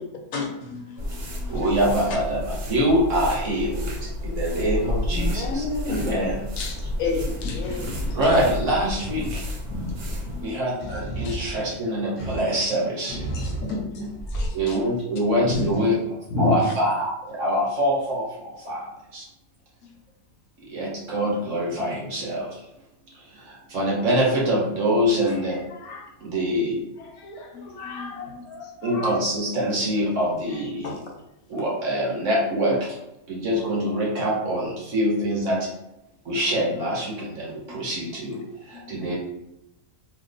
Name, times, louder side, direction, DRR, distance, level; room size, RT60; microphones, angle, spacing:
voice 1, 0.3-1.6 4.5-4.6 5.2-5.4 6.0-6.2 6.6-6.7 7.0-8.0 9.1-9.3 9.6-9.9 10.2-10.6 11.2-11.4 13.3-14.8 15.4-15.7 16.3-16.7 19.8-19.9 25.3-25.4 27.5-28.5 30.8-31.1 37.5-37.6 38.3-38.4 38.7-39.0, left 3 dB, 70° left, 1.0 m, -31 dB
sound 1, 1.0-10.5, left 1 dB, 75° right, 1.4 m, -31 dB
voice 2, 1.5-6.5 8.1-9.4 10.4-13.2 14.5-16.0 16.4-19.3 20.7-22.6 23.3-25.6 26.2-26.8 28.8-30.9 31.5-33.0 33.3-35.7 36.2-39.2, equal, 60° right, 1.3 m, -25 dB
sound 2, 4.2-4.6 6.8-7.2 7.6-9.5 9.8-12.6 13.1-14.7 15.5-15.7 16.5-16.6, right 1 dB, 40° left, 0.8 m, -34 dB
voice 3, 5.1-6.2 25.4-26.1 27.1-29.2, left 2 dB, 90° left, 1.2 m, -34 dB
2.8 x 2.4 x 3.9 m
omnidirectional pair, 1.5 m